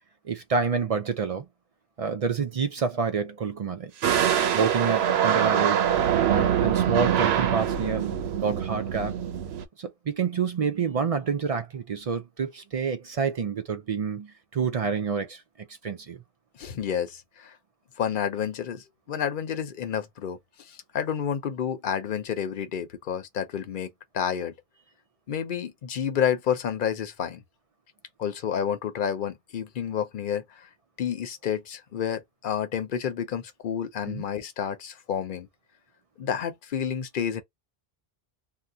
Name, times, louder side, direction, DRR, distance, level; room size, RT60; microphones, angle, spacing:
voice 1, 0.2-1.5 2.0-3.9 4.5-5.9 6.3-9.2 9.8-15.4 15.8-16.2 34.1-34.2, right 5 dB, 50° right, 0.4 m, -28 dB
sound 1, 4.0-9.6, right 9 dB, 85° right, 0.8 m, -24 dB
voice 2, 16.6-17.5 18.0-24.5 25.3-27.4 28.2-30.7 31.0-35.5 36.2-37.4, left 8 dB, 60° left, 0.7 m, -30 dB
2.7 x 2.1 x 3.4 m
omnidirectional pair, 1.0 m